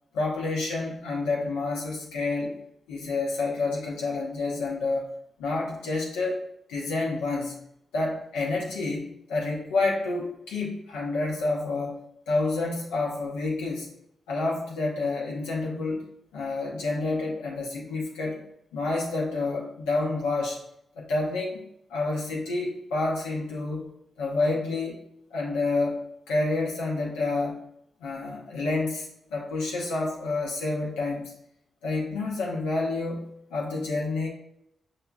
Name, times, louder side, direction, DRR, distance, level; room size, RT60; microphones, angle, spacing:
voice 1, 0.1-2.6 2.9-5.1 5.4-6.4 6.7-7.5 7.9-12.0 12.3-13.9 14.3-16.0 16.3-18.4 18.7-20.6 20.9-21.6 21.9-23.9 24.2-25.0 25.3-26.0 26.3-27.6 28.0-31.3 31.8-34.3, left 3 dB, 90° left, -3 dB, 0.9 m, -29 dB
5.6 x 2.8 x 2.3 m, 0.75 s
hypercardioid pair, 40°, 0 cm